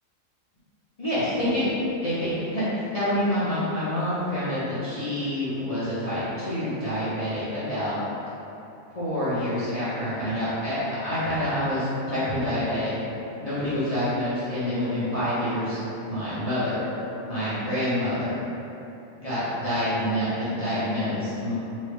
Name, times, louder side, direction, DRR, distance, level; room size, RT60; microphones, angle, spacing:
voice 1, 1.0-1.7 2.0-8.0 8.9-12.9 13.4-16.8 17.3-18.3 19.1-21.5, left 1 dB, 30° left, -14 dB, 0.8 m, -27 dB
3.2 x 2.8 x 3.2 m, 2.8 s
omnidirectional pair, 1.4 m